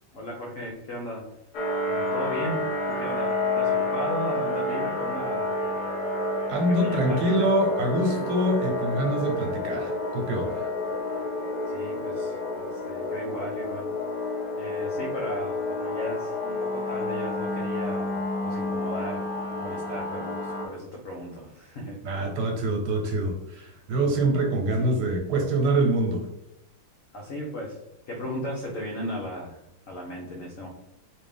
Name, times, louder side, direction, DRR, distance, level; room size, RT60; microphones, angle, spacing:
voice 1, 0.1-1.2 1.9-5.5 6.5-7.6 8.1-8.4 11.7-13.9 14.6-19.2 19.6-22.0 24.7-24.9 27.1-27.8 28.1-30.7, equal, 90° left, -2 dB, 0.7 m, -36 dB
sound 1, 1.5-20.7, left 2 dB, 60° left, 1.1 m, -29 dB
voice 2, 6.5-10.7 22.0-26.2, right 1 dB, 90° right, 2 dB, 1.8 m, -25 dB
4.0 x 2.5 x 3.5 m, 0.84 s
omnidirectional pair, 2.4 m